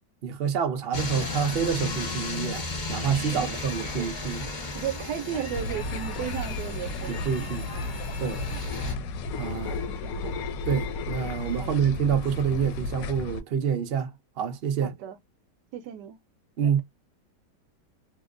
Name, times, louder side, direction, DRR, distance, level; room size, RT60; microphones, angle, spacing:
voice 1, 0.2-4.5 7.1-7.7 8.2-8.4 9.4-9.8 10.7-14.9 16.6-16.8, right 7 dB, 60° right, 0.6 m, -27 dB
sound 1, 0.9-8.9, left 3 dB, 30° left, 1.0 m, -35 dB
voice 2, 3.3-3.6 4.0-4.1 4.7-8.0 8.5-8.6 9.7-10.4 11.6-11.8 14.8-15.2 15.7-16.2 16.6-16.8, right 10 dB, 80° right, 1.2 m, -36 dB
sound 2, 5.5-13.4, left 2 dB, 85° left, 1.2 m, -34 dB
sound 3, 8.6-11.9 12.3-12.6, left 8 dB, 65° left, 0.9 m, -38 dB
2.9 x 2.7 x 2.4 m
omnidirectional pair, 1.9 m